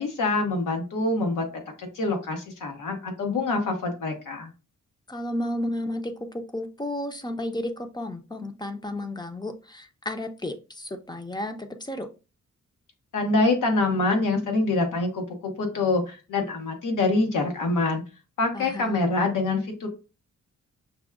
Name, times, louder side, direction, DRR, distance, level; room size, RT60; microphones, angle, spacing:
voice 1, 0.0-4.5 13.1-18.0 18.4-19.9, left 3 dB, 90° left, 3 dB, 1.1 m, -25 dB
voice 2, 5.1-12.1 18.5-19.0, left 1 dB, 15° left, 7 dB, 0.5 m, -32 dB
6.0 x 2.2 x 2.3 m, 0.31 s
cardioid pair, 95°, 31 cm